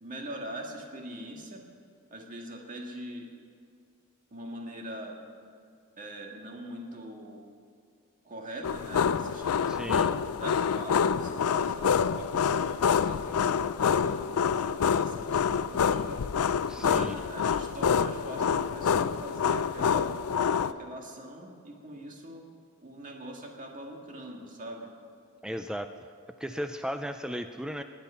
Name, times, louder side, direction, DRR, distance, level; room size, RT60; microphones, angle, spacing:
voice 1, 0.0-1.6 2.1-3.3 4.3-5.5 6.0-7.4 8.2-10.1 10.3-16.2 16.8-20.1 20.6-22.5 22.8-24.9, right 1 dB, 40° right, 0 dB, 1.9 m, -43 dB
sound 1, 8.6-20.7, left 7 dB, 90° left, 0.4 m, -27 dB
voice 2, 9.7-10.1 16.7-17.2 25.4-25.9 26.4-27.8, equal, 5° right, 8 dB, 0.3 m, -35 dB
20.0 x 8.8 x 5.7 m, 2.2 s
head